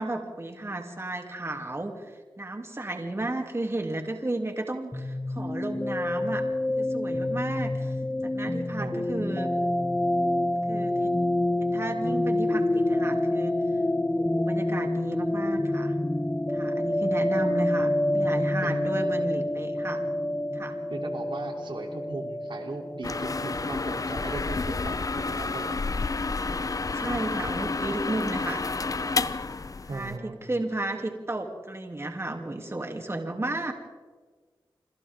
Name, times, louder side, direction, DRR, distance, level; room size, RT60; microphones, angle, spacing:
voice 1, 0.0-2.0 2.4-6.4 6.8-7.9 8.3-9.5 10.7-10.9 11.7-13.5 14.1-15.9 16.5-20.0 20.5-20.7 26.9-28.7 29.9-33.7, right 2 dB, 30° right, 3 dB, 2.9 m, -33 dB
sound 1, 4.9-24.4, left 1 dB, 15° left, 1.7 m, -28 dB
voice 2, 20.9-25.8 29.9-30.4, right 3 dB, 65° right, 3 dB, 3.4 m, -38 dB
sound 2, 23.0-30.2, left 3 dB, 40° left, 0.8 m, -30 dB
27.0 x 26.5 x 3.7 m, 1.4 s
cardioid pair, 45°, 9 cm